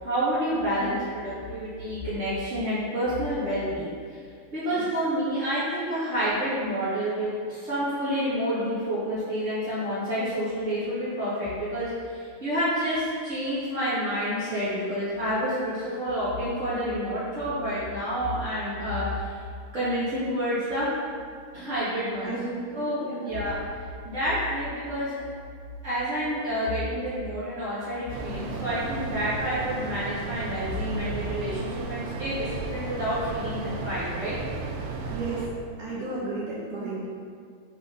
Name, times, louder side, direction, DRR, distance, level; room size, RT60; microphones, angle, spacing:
voice 1, 0.0-4.2 4.5-19.4 19.7-20.9 21.5-22.3 22.7-23.6 24.0-25.2 25.8-34.3, equal, 40° right, -13 dB, 1.0 m, -29 dB
voice 2, 22.2-23.3 35.1-35.4 35.8-37.1, right 3 dB, 60° right, -7 dB, 2.3 m, -33 dB
sound 1, 28.1-35.5, right 4 dB, 90° right, 2.7 m, -34 dB
5.7 x 5.5 x 5.9 m, 2.2 s
omnidirectional pair, 4.8 m